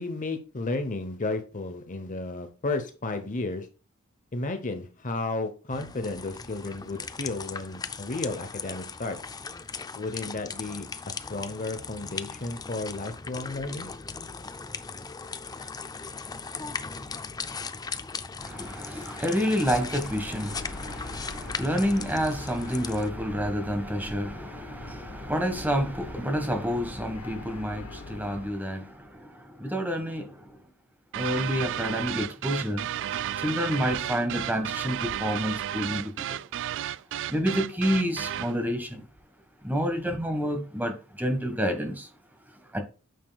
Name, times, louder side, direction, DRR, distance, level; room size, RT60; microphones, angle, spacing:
voice 1, 0.0-3.7 4.3-9.2 9.9-13.9, left 2 dB, 40° left, 0.9 m, -33 dB
sound 1, 5.7-23.1, left 5 dB, 20° left, 0.5 m, -38 dB
voice 2, 18.4-30.6 31.1-32.9 33.4-36.4 37.3-39.0 39.6-42.1 42.7-42.8, equal, 10° right, 1.5 m, -29 dB
sound 2, 19.6-28.5, left 2 dB, 85° left, 0.9 m, -42 dB
sound 3, 31.1-38.6, right 11 dB, 60° right, 0.3 m, -33 dB
9.2 x 6.7 x 2.4 m
head